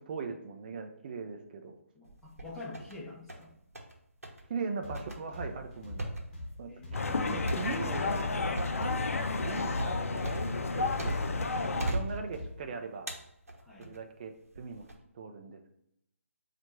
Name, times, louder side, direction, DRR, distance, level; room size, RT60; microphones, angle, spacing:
voice 1, 0.0-1.8 4.5-6.1 6.6-6.7 7.1-8.5 9.3-11.1 11.5-13.1 13.8-14.9 15.1-15.7, right 4 dB, 40° right, 5 dB, 0.5 m, -40 dB
voice 2, 1.9-3.6 6.7-7.2 13.6-13.9, left 2 dB, 5° left, -7 dB, 1.0 m, -48 dB
sound 1, 2.0-3.0 3.3-3.9 4.2-4.4 4.9-11.4 11.8-12.6 13.1-14.0 14.5-14.9, right 2 dB, 80° right, 1.0 m, -39 dB
sound 2, 4.8-12.8, left 1 dB, 35° left, 1.2 m, -43 dB
sound 3, 6.9-11.9, left 3 dB, 70° left, 0.5 m, -31 dB
4.3 x 2.5 x 4.3 m, 0.76 s
figure-of-eight pair, 145°, 8 cm